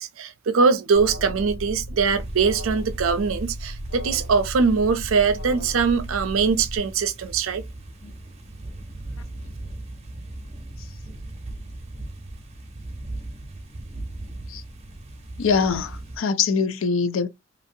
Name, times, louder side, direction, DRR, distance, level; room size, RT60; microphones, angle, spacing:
voice 1, 0.0-7.6, right 5 dB, 80° right, 0.5 m, -22 dB
Alarm, 0.9-6.8, right 1 dB, 55° left, 1.3 m, -35 dB
sound 1, 2.1-16.2, right 2 dB, 30° right, 0.7 m, -38 dB
voice 2, 15.4-17.3, left 5 dB, 75° left, 0.4 m, -23 dB
2.9 x 2.6 x 2.6 m
head